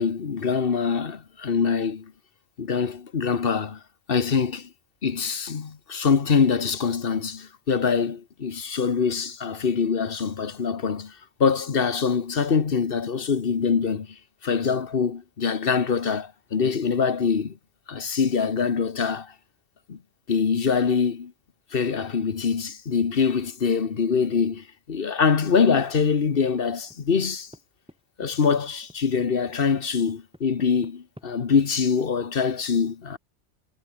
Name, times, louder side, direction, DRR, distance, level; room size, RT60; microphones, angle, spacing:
voice 1, 0.0-2.1 2.6-3.8 4.1-4.7 5.0-17.6 17.9-19.3 19.9-20.0 20.3-21.3 21.7-27.5 28.2-33.2, left 6 dB, 50° left, 1.4 m, -24 dB
sound 1, 26.9-27.6 27.9-28.3 28.6-31.3, equal, 5° right, 7.3 m, -48 dB
omnidirectional pair, 1.2 m